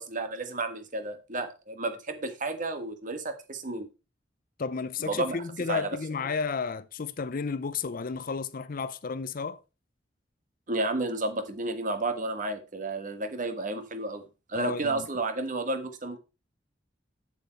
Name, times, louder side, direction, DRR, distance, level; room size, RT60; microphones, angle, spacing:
voice 1, 0.0-3.9 5.0-5.4 5.7-6.0 10.7-14.2 14.5-16.2, right 2 dB, 45° right, 1.5 m, -32 dB
voice 2, 4.6-9.6 14.5-15.1, left 5 dB, 50° left, 0.5 m, -32 dB
8.0 x 7.2 x 4.4 m
head